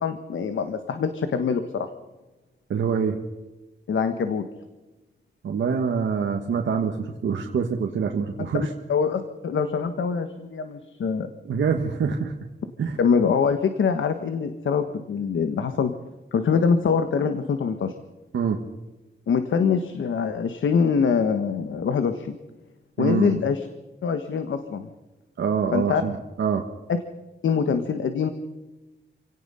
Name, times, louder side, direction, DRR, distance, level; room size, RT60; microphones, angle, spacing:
voice 1, 0.0-1.9 3.9-4.4 8.4-11.3 13.0-15.9 16.3-17.9 19.3-22.3 23.0-23.7 24.0-24.9 25.7-26.0 26.9-27.0 27.4-28.3, left 6 dB, 80° left, 8 dB, 1.4 m, -24 dB
voice 2, 2.7-3.2 5.4-8.7 11.5-12.3 12.8-13.0 18.3-18.7 23.0-23.4 25.4-26.6, right 6 dB, 85° right, 2 dB, 1.7 m, -25 dB
27.5 x 17.5 x 5.7 m, 1.1 s
wide cardioid pair, 160°, 20 cm